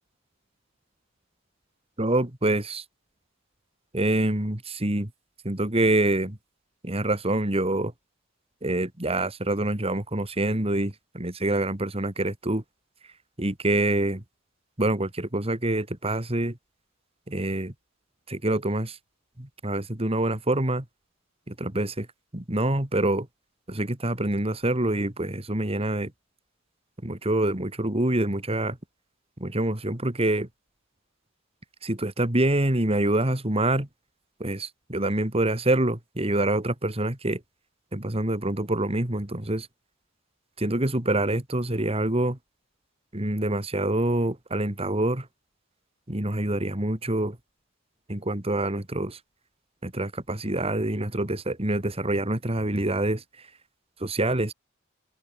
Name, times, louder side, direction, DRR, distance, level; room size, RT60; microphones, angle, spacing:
voice 1, 2.0-2.8 3.9-5.1 5.4-6.4 6.8-7.9 8.6-12.6 13.4-14.2 14.8-16.6 17.3-17.7 18.3-19.0 19.4-20.8 21.5-22.1 22.3-23.3 23.7-26.1 27.0-28.8 29.4-30.5 31.8-33.9 34.4-37.4 37.9-39.7 40.6-42.4 43.1-45.3 46.1-47.4 48.1-49.2 49.8-53.5 54.0-54.5, right 1 dB, 30° right, 2.5 m, -26 dB
open air
head